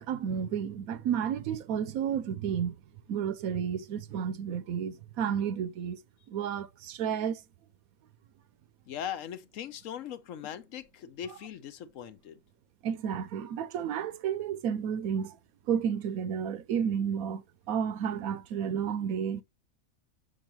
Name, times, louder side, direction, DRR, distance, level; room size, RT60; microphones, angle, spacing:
voice 1, 0.0-2.8 3.1-6.0 6.3-7.4 12.8-15.4 15.7-19.4, right 8 dB, 85° right, 1.1 m, -31 dB
voice 2, 8.9-12.4, left 9 dB, 70° left, 1.0 m, -40 dB
6.4 x 6.3 x 2.9 m
omnidirectional pair, 1.5 m